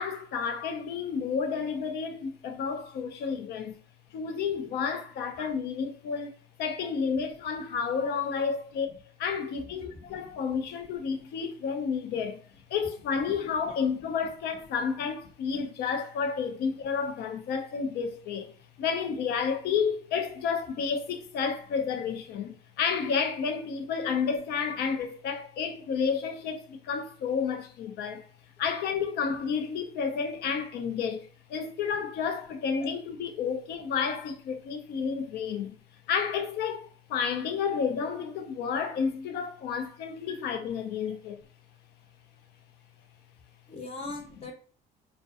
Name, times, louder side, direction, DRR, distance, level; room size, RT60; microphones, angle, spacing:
voice 1, 0.0-3.8 4.1-6.3 6.6-8.9 9.2-28.2 28.6-35.8 36.1-41.4, left 6 dB, 75° left, 0.5 m, -31 dB
voice 2, 43.7-44.5, left 3 dB, 35° left, 0.8 m, -42 dB
2.2 x 2.1 x 2.7 m
cardioid pair, 110°, 17 cm